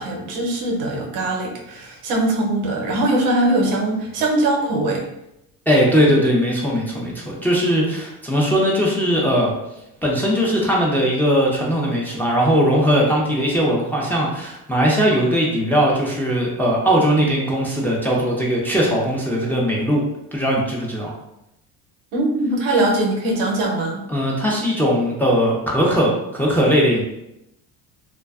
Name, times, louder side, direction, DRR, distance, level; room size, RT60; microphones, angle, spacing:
voice 1, 0.0-5.1 22.1-24.0, right 1 dB, 85° right, 0 dB, 0.7 m, -21 dB
voice 2, 5.7-9.5 10.0-20.0 20.3-21.1 24.1-27.0, equal, 5° left, -4 dB, 0.4 m, -19 dB
2.4 x 2.2 x 2.3 m, 0.87 s
supercardioid pair, 95°, 42 cm